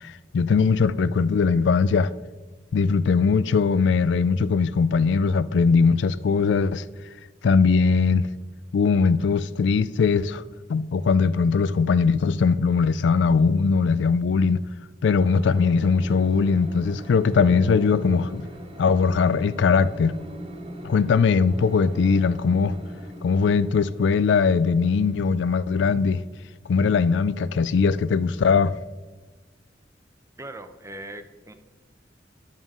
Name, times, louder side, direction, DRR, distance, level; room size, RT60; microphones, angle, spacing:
voice 1, 0.0-2.1 2.7-6.8 7.4-8.3 8.7-10.4 10.7-14.6 15.0-18.5 18.8-20.1 20.8-22.8 23.2-26.2 26.7-28.8, left 5 dB, 70° left, 0.3 m, -20 dB
sound 1, 15.3-26.4, equal, 35° right, 1.4 m, -41 dB
voice 2, 30.4-31.5, right 1 dB, 15° right, 0.6 m, -39 dB
10.5 x 7.3 x 3.7 m
head